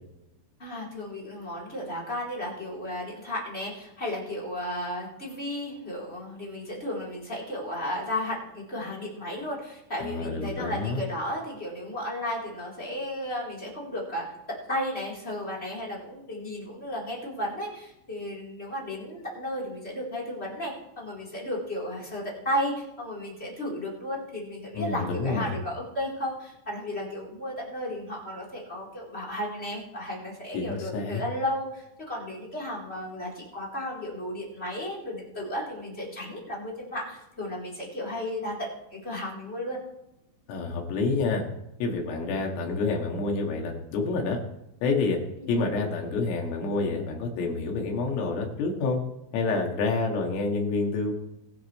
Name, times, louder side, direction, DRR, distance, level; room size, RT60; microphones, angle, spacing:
voice 1, 0.6-39.8 45.4-45.7, left 1 dB, 15° left, -3 dB, 3.6 m, -34 dB
voice 2, 10.0-11.0 24.7-25.5 30.5-31.2 40.5-41.4 41.8-44.4 44.8-45.2 45.5-49.0 49.3-51.1, left 3 dB, 85° left, 1 dB, 4.9 m, -28 dB
21.5 x 10.0 x 3.4 m, 0.86 s
omnidirectional pair, 5.8 m